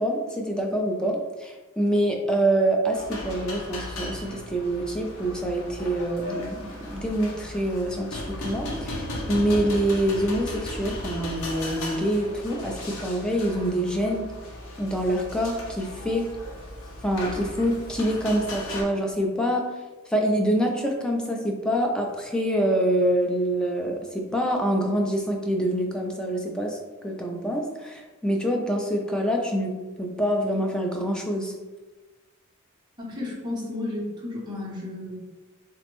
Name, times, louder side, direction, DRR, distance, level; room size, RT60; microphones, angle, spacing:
voice 1, 0.0-14.3 14.8-16.3 17.0-19.6 20.1-31.5, right 1 dB, 5° left, 1 dB, 0.3 m, -26 dB
sound 1, 2.9-18.8, left 1 dB, 65° left, 0.6 m, -36 dB
voice 2, 33.0-35.1, left 2 dB, 20° right, -6 dB, 0.7 m, -32 dB
3.3 x 2.0 x 3.0 m, 1.2 s
head